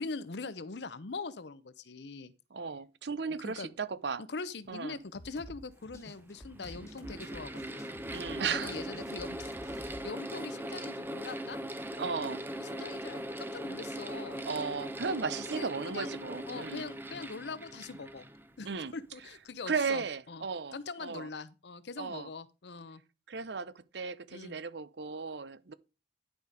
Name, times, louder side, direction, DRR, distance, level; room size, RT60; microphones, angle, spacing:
voice 1, 0.0-2.3 3.4-3.7 4.2-9.5 10.0-11.6 12.6-14.5 15.5-16.2 16.5-18.3 18.6-20.5 20.7-23.0 24.3-24.6, left 4 dB, 70° left, 0.7 m, -42 dB
voice 2, 2.5-4.2 4.7-5.0 8.0-8.7 12.0-12.4 14.5-16.9 18.6-18.9 19.7-21.3 22.0-22.3 23.3-25.7, right 5 dB, 70° right, 0.7 m, -35 dB
sound 1, 5.1-10.1, equal, 15° left, 1.3 m, -50 dB
Mechanical fan, 5.3-5.4 6.3-19.0, equal, 10° right, 0.7 m, -40 dB
11.0 x 5.0 x 5.1 m
head